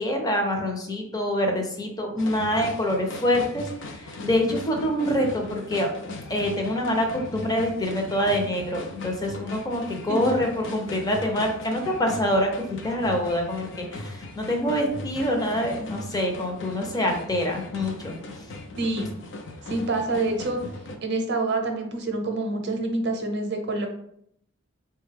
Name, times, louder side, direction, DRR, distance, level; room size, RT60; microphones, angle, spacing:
voice 1, 0.0-5.9 6.3-12.5 12.8-18.2, equal, 20° left, 2 dB, 0.6 m, -25 dB
sound 1, 2.2-21.0, left 2 dB, 65° left, 0.5 m, -39 dB
voice 2, 18.8-19.1 19.7-20.6 21.0-23.9, right 2 dB, 60° right, 4 dB, 0.6 m, -27 dB
3.9 x 2.2 x 3.3 m, 0.71 s
head